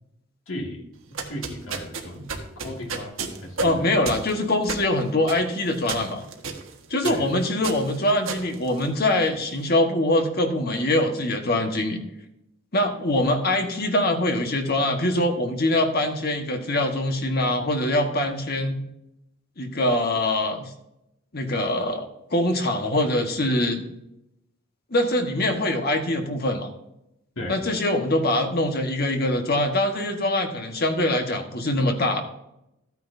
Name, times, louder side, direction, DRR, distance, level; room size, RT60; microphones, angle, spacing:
voice 1, 0.5-0.9 1.3-2.3 2.6-3.1 3.4-3.9 7.0-7.3 27.4-27.6, left 1 dB, 75° left, 0 dB, 2.2 m, -35 dB
sound 1, 1.0-9.4, right 4 dB, 75° right, 1.4 m, -34 dB
voice 2, 3.6-6.2 6.9-12.0 12.7-18.8 19.6-20.7 21.3-22.0 22.3-23.8 24.9-26.7 27.5-32.2, left 1 dB, 50° left, 4 dB, 1.4 m, -23 dB
13.5 x 9.4 x 2.7 m, 0.85 s
head